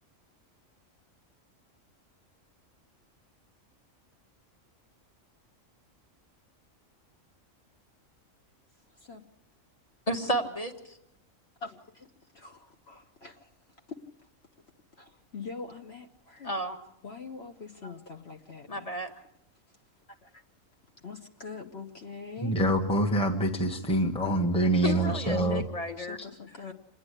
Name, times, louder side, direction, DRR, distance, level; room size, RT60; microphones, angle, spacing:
voice 1, 8.9-9.2 11.6-12.1 12.3-13.5 13.9-14.3 15.0-16.5 17.0-18.9 20.2-20.4 21.0-22.6 24.8-25.7 26.0-26.7, left 4 dB, 50° left, 3 dB, 1.3 m, -43 dB
voice 2, 10.1-11.0 16.4-16.8 18.7-19.1 24.8-26.2, equal, 25° left, 4 dB, 1.7 m, -32 dB
voice 3, 22.4-25.6, right 1 dB, 5° left, 2 dB, 1.3 m, -25 dB
27.5 x 10.0 x 9.9 m, 0.81 s
omnidirectional pair, 1.4 m